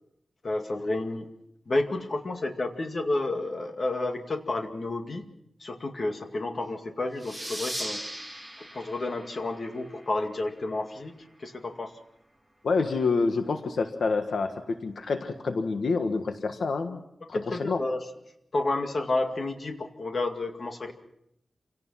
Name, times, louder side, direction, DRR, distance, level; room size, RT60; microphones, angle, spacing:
voice 1, 0.4-1.3 1.7-5.2 5.6-8.0 8.6-11.1 11.4-11.9 17.3-18.0 18.5-20.9, left 2 dB, 45° left, 5 dB, 2.2 m, -30 dB
sound 1, 7.2-10.4, right 1 dB, ahead, 2.4 m, -38 dB
voice 2, 12.6-17.0 17.3-17.8, left 4 dB, 80° left, 6 dB, 1.5 m, -27 dB
28.0 x 17.5 x 5.8 m, 0.79 s
wide cardioid pair, 135°, 0 cm